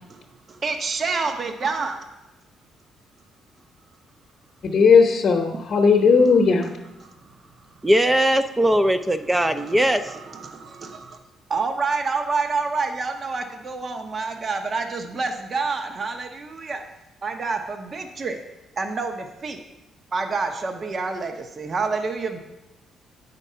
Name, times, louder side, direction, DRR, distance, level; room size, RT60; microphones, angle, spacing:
voice 1, 0.6-2.0 7.0-7.1 9.6-11.2 11.5-16.8 17.2-18.4 18.8-19.6 20.1-22.4, right 4 dB, 45° right, 6 dB, 0.8 m, -28 dB
voice 2, 4.6-6.7, left 5 dB, 50° left, 2 dB, 0.9 m, -16 dB
voice 3, 7.8-10.1, right 1 dB, 10° right, 9 dB, 0.4 m, -20 dB
8.2 x 5.3 x 5.5 m, 1.0 s
cardioid pair, 90°, 0 cm